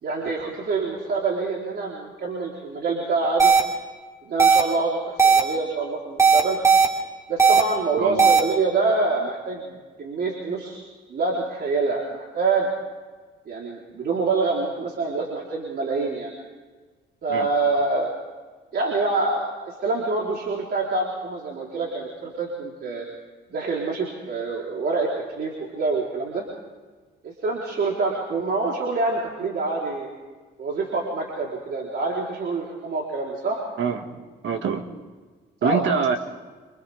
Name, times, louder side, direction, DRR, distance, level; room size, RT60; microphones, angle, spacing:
voice 1, 0.0-3.5 4.2-6.6 7.3-10.8 11.1-12.7 13.5-16.3 17.2-18.1 18.7-23.1 23.5-25.1 25.3-26.4 27.2-30.1 30.6-33.6 35.6-35.8, right 3 dB, 55° right, -3 dB, 4.3 m, -26 dB
sound 1, 3.4-3.6 4.4-4.6 5.2-5.4 6.2-6.9 7.4-7.6 8.2-8.4, right 5 dB, 15° right, 3.1 m, -15 dB
voice 2, 8.0-8.3 17.3-17.5 33.8-34.2 34.4-34.9 35.6-36.2, right 6 dB, 70° right, 5 dB, 2.3 m, -25 dB
27.0 x 26.5 x 3.7 m, 1.4 s
cardioid pair, 90°, 20 cm